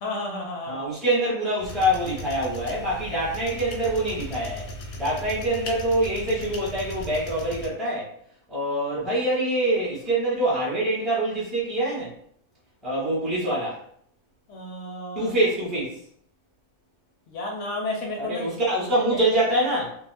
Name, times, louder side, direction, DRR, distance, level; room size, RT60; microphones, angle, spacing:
voice 1, 0.0-0.8 14.5-15.3 17.3-18.5 18.8-19.2, left 2 dB, 65° left, 1 dB, 0.8 m, -32 dB
voice 2, 0.7-4.7 5.0-8.1 8.5-12.1 12.8-13.8 15.1-16.0 18.2-20.0, right 1 dB, ahead, -8 dB, 0.8 m, -25 dB
sound 1, 1.6-7.7, left 1 dB, 90° left, 1.1 m, -37 dB
2.6 x 2.1 x 3.2 m, 0.63 s
omnidirectional pair, 1.5 m